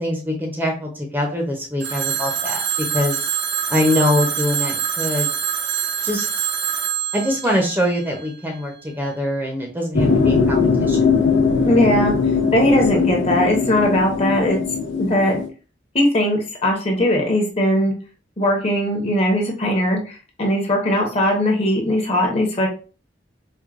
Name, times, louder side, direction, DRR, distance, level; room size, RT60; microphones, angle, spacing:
voice 1, 0.0-2.6 2.9-3.3 3.7-5.3 6.0-6.4 7.1-11.0, left 1 dB, 10° right, 1 dB, 0.6 m, -23 dB
Telephone, 1.8-8.6, right 8 dB, 70° right, 0.5 m, -25 dB
sound 1, 9.9-15.5, left 5 dB, 90° left, 0.5 m, -20 dB
voice 2, 11.7-12.1 12.5-14.6 15.0-15.4 15.9-17.9 18.4-22.7, left 1 dB, 35° left, 1 dB, 0.9 m, -19 dB
4.5 x 2.2 x 2.4 m, 0.36 s
head